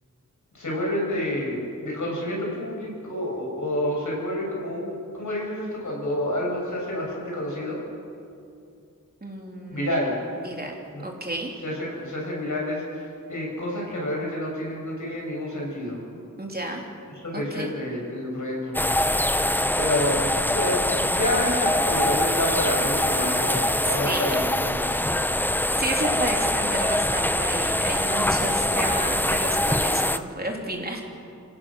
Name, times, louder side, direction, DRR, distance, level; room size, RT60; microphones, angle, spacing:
voice 1, 0.5-7.8 9.7-10.2 10.9-11.1 11.6-12.8 13.3-16.0 17.2-18.8 19.8-24.9, left 1 dB, 70° left, -3 dB, 7.0 m, -28 dB
voice 2, 9.2-10.0 10.4-11.6 16.4-16.9 17.3-17.7 23.8-24.5 25.7-31.0, right 1 dB, 30° right, 0 dB, 3.3 m, -31 dB
sound 1, 18.7-30.2, left 1 dB, 5° left, 0.6 m, -24 dB
27.0 x 16.5 x 6.3 m, 2.6 s
wide cardioid pair, 75°, 31 cm